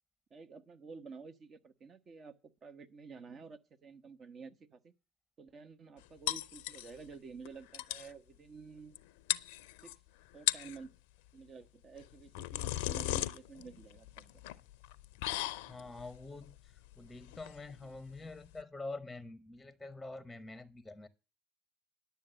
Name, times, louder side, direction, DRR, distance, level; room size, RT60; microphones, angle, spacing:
voice 1, 0.3-2.3 2.6-4.9 5.4-9.0 9.8-9.9 10.3-10.9 11.3-14.4, right 5 dB, 40° right, 1.1 m, -51 dB
sound 1, 6.3-7.1 7.5-7.6 7.7-8.1 9.0-9.1 9.3-10.0 10.3-10.8 12.0-18.6, left 14 dB, 75° left, 0.6 m, -37 dB
voice 2, 15.7-21.1, left 2 dB, 10° left, 0.9 m, -46 dB
10.5 x 7.1 x 6.2 m
hypercardioid pair, 75°, 0 cm